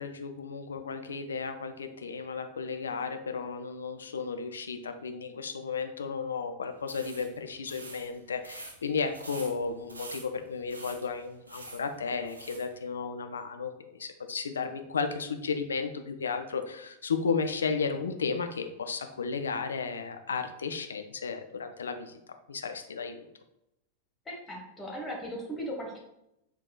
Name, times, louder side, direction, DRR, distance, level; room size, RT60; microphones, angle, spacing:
voice 1, 0.0-22.2 22.5-23.3, left 5 dB, 70° left, 7 dB, 0.3 m, -34 dB
sound 1, 6.8-12.7, right 2 dB, 80° right, 0.4 m, -47 dB
voice 2, 24.3-26.0, equal, 15° left, -1 dB, 1.0 m, -37 dB
5.3 x 2.3 x 2.2 m, 0.84 s
figure-of-eight pair, 90°, 0 cm